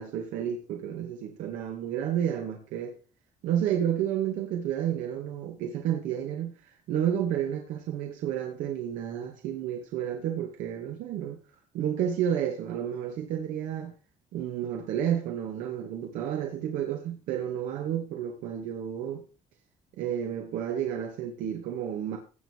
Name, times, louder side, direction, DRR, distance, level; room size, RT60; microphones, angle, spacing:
voice 1, 0.0-3.0 3.4-6.5 6.9-11.4 11.7-13.9 14.3-19.2 20.0-22.2, right 9 dB, 90° right, 2.3 m, -31 dB
17.0 x 8.0 x 4.8 m
cardioid pair, 165°, 13 cm